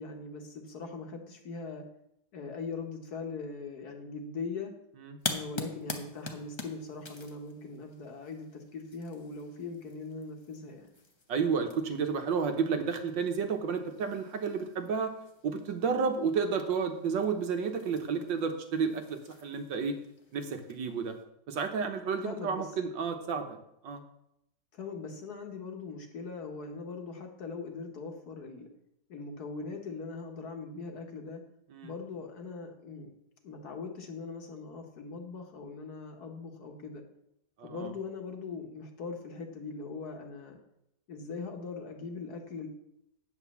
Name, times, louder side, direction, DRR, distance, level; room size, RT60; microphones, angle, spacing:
voice 1, 0.0-1.8 2.3-4.7 5.2-10.9 22.2-22.7 24.7-28.7 29.1-31.4 31.8-33.1 33.4-37.0 37.6-40.6 41.1-42.7, left 4 dB, 55° left, 3 dB, 1.7 m, -41 dB
sound 1, 5.2-21.2, left 3 dB, 30° left, 0.5 m, -46 dB
voice 2, 11.3-15.1 15.4-20.0 20.3-21.1 21.5-23.6 23.8-24.0 31.7-31.9 37.6-37.9, right 5 dB, 70° right, 6 dB, 1.7 m, -31 dB
9.2 x 5.3 x 7.0 m, 0.81 s
omnidirectional pair, 2.1 m